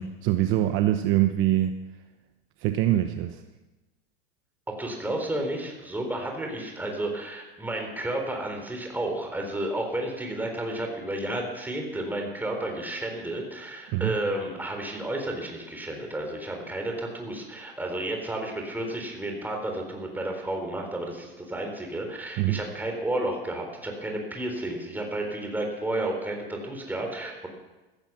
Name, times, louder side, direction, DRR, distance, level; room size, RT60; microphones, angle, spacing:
voice 1, 0.0-1.8 2.6-3.4 13.9-14.1 22.4-22.6, right 13 dB, 45° right, 8 dB, 1.0 m, -24 dB
voice 2, 4.7-27.5, right 1 dB, 5° right, 2 dB, 3.9 m, -32 dB
16.0 x 15.0 x 6.2 m, 1.1 s
supercardioid pair, 135°, 29 cm